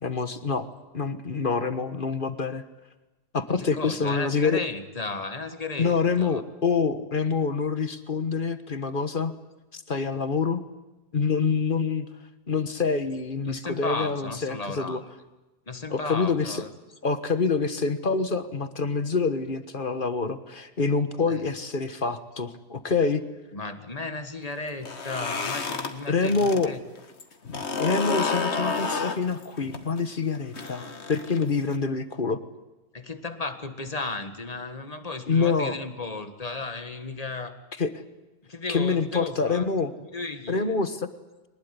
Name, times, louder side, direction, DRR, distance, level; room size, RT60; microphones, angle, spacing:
voice 1, 0.0-0.7 0.9-2.6 3.3-4.6 5.8-9.3 9.7-10.6 11.1-12.1 12.5-15.0 15.9-16.6 17.0-23.2 26.1-26.7 27.8-32.4 35.3-35.8 37.8-37.9 38.7-39.9 40.5-41.1, left 4 dB, 50° left, 11 dB, 1.5 m, -26 dB
voice 2, 3.5-6.4 13.4-15.0 15.7-16.7 21.3-21.5 23.5-26.8 32.9-37.6 38.4-39.7 40.0-40.8, left 3 dB, 35° left, 8 dB, 1.8 m, -35 dB
sound 1, 24.7-26.7 27.0-31.8, left 4 dB, 75° left, 1.9 m, -30 dB
23.0 x 20.0 x 9.8 m, 1.1 s
omnidirectional pair, 1.2 m